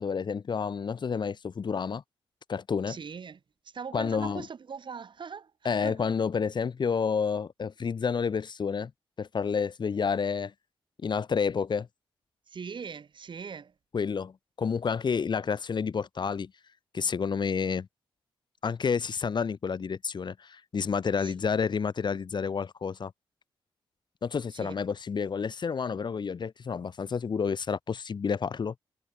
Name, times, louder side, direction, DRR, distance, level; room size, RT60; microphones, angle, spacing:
voice 1, 0.0-2.0 2.5-3.0 3.9-4.5 5.6-8.9 9.2-10.5 11.0-11.9 13.9-16.5 16.9-17.9 18.6-23.1 24.2-28.8, left 6 dB, 50° left, 1.5 m, -29 dB
voice 2, 2.9-3.4 3.6-6.1 12.5-13.7 21.2-21.5 24.5-24.8, right 6 dB, 55° right, 4.6 m, -41 dB
cardioid pair, 60°, 10 cm